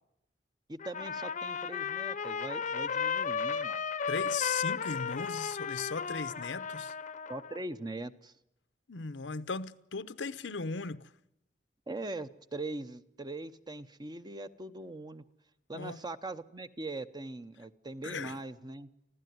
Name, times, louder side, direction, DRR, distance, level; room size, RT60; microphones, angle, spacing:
voice 1, 0.7-3.8 7.3-8.3 11.9-15.2 15.7-18.9, right 2 dB, 25° right, 0.9 m, -41 dB
Trumpet, 0.8-7.6, left 6 dB, 45° left, 0.8 m, -34 dB
voice 2, 4.1-6.9 8.9-11.1 15.7-16.0 18.0-18.4, left 4 dB, 85° left, 0.9 m, -37 dB
25.0 x 15.5 x 9.5 m
head